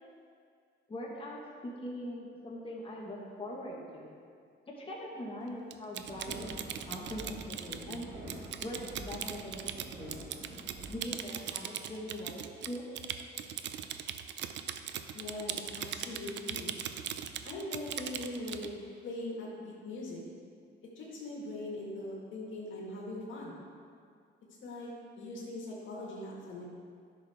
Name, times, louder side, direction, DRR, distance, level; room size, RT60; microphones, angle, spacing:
voice 1, 0.9-4.1 4.7-8.1 8.6-9.7 10.0-10.2 10.9-12.8, left 1 dB, 25° left, -4 dB, 1.7 m, -42 dB
Typing, 5.7-18.7, right 9 dB, 65° right, 0.5 m, -40 dB
sound 1, 6.0-11.0, right 1 dB, 85° right, 2.2 m, -47 dB
voice 2, 15.1-16.7 17.4-20.2 21.0-23.5 24.6-24.9 25.2-26.6, left 2 dB, 75° left, -4 dB, 2.0 m, -41 dB
11.0 x 6.3 x 3.6 m, 2.2 s
cardioid pair, 90°, 20 cm